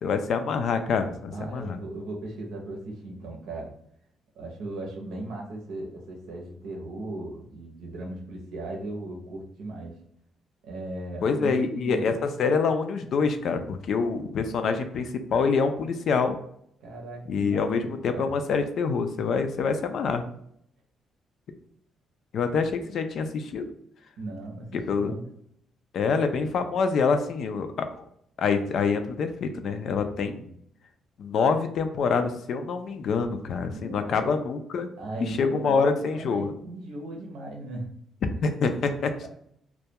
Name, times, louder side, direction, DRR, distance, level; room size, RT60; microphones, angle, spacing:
voice 1, 0.0-1.8 11.2-16.4 17.3-20.2 22.3-23.6 24.7-25.1 25.9-28.0 28.4-30.4 31.2-34.9 35.2-36.5 38.4-39.3, left 5 dB, 65° left, 7 dB, 0.3 m, -26 dB
voice 2, 1.3-3.7 4.4-10.0 10.6-12.1 16.8-18.3 24.2-25.3 30.4-30.5 33.7-34.4 35.0-37.9 39.2-39.3, right 2 dB, 90° right, 0 dB, 0.7 m, -37 dB
2.2 x 2.2 x 2.8 m, 0.69 s
cardioid pair, 90°, 0 cm